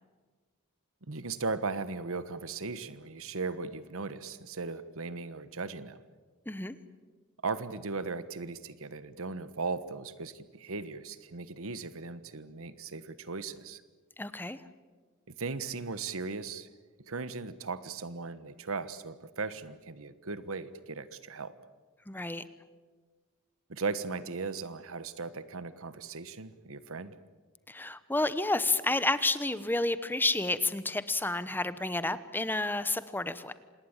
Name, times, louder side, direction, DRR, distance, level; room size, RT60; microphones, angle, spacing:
voice 1, 1.1-6.0 7.4-13.8 15.3-16.7 17.1-21.5 23.7-27.1, right 4 dB, 65° right, 14 dB, 1.3 m, -37 dB
voice 2, 6.5-6.8 14.2-14.6 22.1-22.4 27.7-33.5, left 2 dB, 10° left, 14 dB, 0.9 m, -30 dB
27.0 x 19.5 x 8.9 m, 1.4 s
head